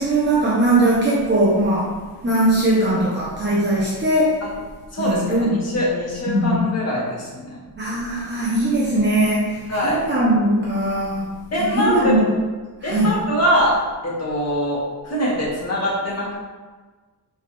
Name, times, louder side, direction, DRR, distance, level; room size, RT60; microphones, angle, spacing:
voice 1, 0.0-4.4 5.0-5.8 6.3-6.6 7.8-11.3 11.7-12.3 12.8-13.1, right 1 dB, 25° right, -7 dB, 1.1 m, -20 dB
voice 2, 4.9-7.6 9.7-10.0 11.5-12.1 12.8-13.7 14.0-16.3, equal, 40° left, -6 dB, 2.3 m, -23 dB
8.7 x 4.4 x 3.5 m, 1.3 s
wide cardioid pair, 165°, 39 cm